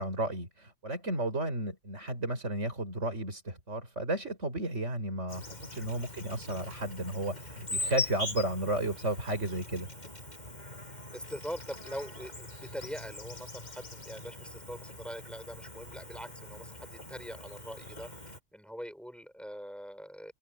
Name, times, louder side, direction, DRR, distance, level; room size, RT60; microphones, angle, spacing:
voice 1, 0.0-5.4 5.7-9.9, right 1 dB, 80° right, 5.4 m, -33 dB
Insect, 5.3-18.4, left 2 dB, 35° left, 8.1 m, -42 dB
voice 2, 11.1-18.1 18.5-20.3, equal, ahead, 5.8 m, -43 dB
open air
omnidirectional pair, 1.2 m